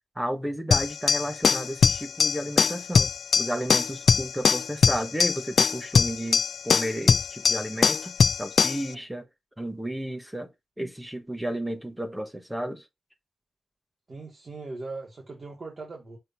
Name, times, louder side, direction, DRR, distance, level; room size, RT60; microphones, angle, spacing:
voice 1, 0.1-3.1 3.4-9.3 9.6-10.5 10.8-12.8, equal, 5° right, 1.3 m, -32 dB
sound 1, 0.7-8.9, left 6 dB, 80° left, 0.4 m, -22 dB
voice 2, 14.1-16.2, right 3 dB, 45° right, 1.9 m, -39 dB
6.6 x 2.8 x 5.4 m
wide cardioid pair, 140°, 0 cm